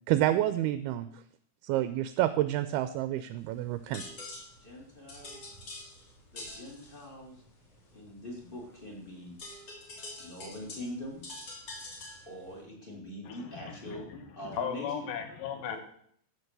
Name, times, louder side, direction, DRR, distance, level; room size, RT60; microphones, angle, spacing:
voice 1, 0.1-1.1 1.6-4.0, right 13 dB, 80° right, 12 dB, 2.4 m, -28 dB
sound 1, 3.4-12.6, left 2 dB, 40° left, 3.5 m, -47 dB
voice 2, 3.8-4.1 4.6-5.4 6.3-7.4 7.9-9.4 10.2-11.2 12.3-14.1 14.4-14.9 15.7-15.8, left 1 dB, 15° left, -1 dB, 2.4 m, -43 dB
voice 3, 13.2-15.8, left 7 dB, 65° left, 6 dB, 2.7 m, -37 dB
14.5 x 6.8 x 6.7 m, 0.65 s
omnidirectional pair, 4.8 m